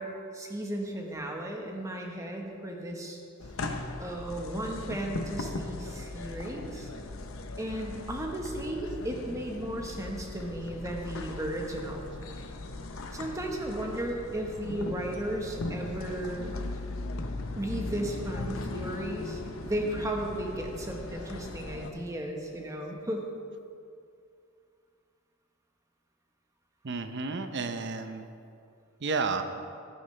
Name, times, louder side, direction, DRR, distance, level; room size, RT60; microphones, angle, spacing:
voice 1, 0.0-3.2 4.0-6.9 7.6-12.5 13.1-16.6 17.6-23.3, right 1 dB, 15° right, 1 dB, 1.2 m, -35 dB
sound 1, 3.4-21.9, left 2 dB, 75° left, 0.8 m, -38 dB
voice 2, 26.8-28.3 29.0-29.4, right 4 dB, 60° right, 8 dB, 0.7 m, -31 dB
15.0 x 9.2 x 3.3 m, 2.5 s
head